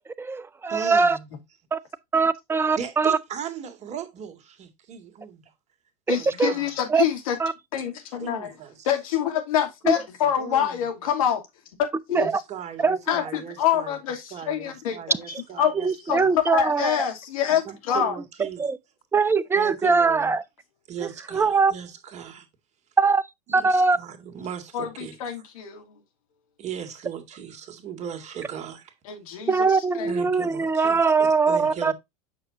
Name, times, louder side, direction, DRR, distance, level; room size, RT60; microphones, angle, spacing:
voice 1, 0.2-1.2 1.7-1.8 2.1-3.2 6.1-6.5 6.9-7.0 7.4-7.5 9.8-9.9 12.1-12.4 12.8-13.2 15.3-15.4 15.7-17.0 18.4-18.8 19.1-20.4 21.3-21.7 23.0-23.2 23.5-24.0 29.5-31.9, right 4 dB, 10° right, 0.7 m, -22 dB
voice 2, 0.7-1.3 2.8-5.4 6.1-6.7 8.2-8.9 10.4-10.8 12.2-13.9 14.3-16.4 17.7-18.6 19.6-20.3 20.9-22.5 23.5-25.2 26.6-28.9 30.0-31.0 31.5-31.9, right 8 dB, 35° right, 2.1 m, -37 dB
voice 3, 6.1-7.4 7.7-8.5 8.9-11.4 12.1-12.3 13.1-15.0 15.6-15.7 16.1-18.2 24.7-26.0 29.1-29.7 30.0-30.1, left 9 dB, 60° left, 2.7 m, -26 dB
8.5 x 6.2 x 2.6 m
figure-of-eight pair, 85°, 20 cm